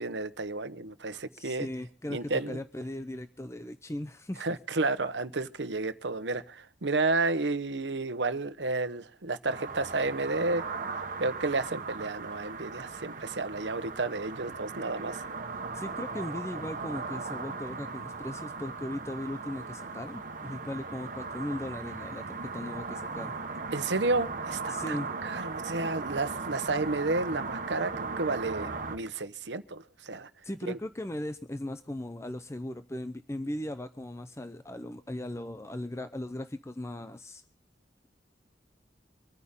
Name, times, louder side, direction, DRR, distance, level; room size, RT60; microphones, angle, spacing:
voice 1, 0.0-1.7 2.1-2.6 4.4-10.6 11.2-15.2 23.7-30.3 30.7-30.8, right 3 dB, 80° right, 1.1 m, -31 dB
voice 2, 1.3-4.5 15.7-23.4 24.7-25.1 30.4-37.4, left 1 dB, 15° left, 0.7 m, -38 dB
sound 1, 9.5-29.0, right 4 dB, 50° right, 1.5 m, -38 dB
25.5 x 9.8 x 3.7 m
head